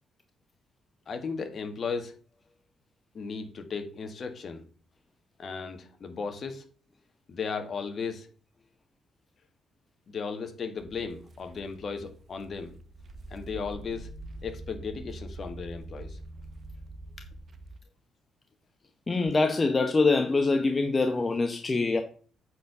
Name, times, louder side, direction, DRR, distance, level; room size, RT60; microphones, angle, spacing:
voice 1, 1.1-2.1 3.1-4.6 5.4-6.6 7.3-8.3 10.1-12.7 13.3-14.1 14.4-16.2, left 5 dB, 50° left, 1.8 m, -35 dB
sound 1, 10.8-17.8, right 2 dB, 45° right, 1.1 m, -44 dB
voice 2, 19.1-22.0, left 3 dB, 25° left, 1.0 m, -24 dB
9.0 x 4.7 x 6.8 m
cardioid pair, 90°, 0 cm